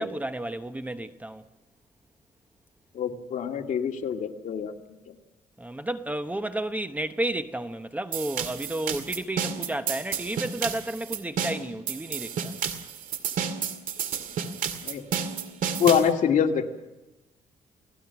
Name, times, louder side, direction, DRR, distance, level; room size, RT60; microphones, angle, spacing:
voice 1, 0.0-1.4 5.6-12.5, right 1 dB, 10° right, 1.0 m, -32 dB
voice 2, 2.9-4.7 14.8-15.0 15.8-16.7, left 7 dB, 65° left, 2.5 m, -25 dB
sound 1, 8.1-16.1, right 7 dB, 70° right, 2.2 m, -31 dB
29.5 x 18.5 x 6.0 m
cardioid pair, 125°, 14 cm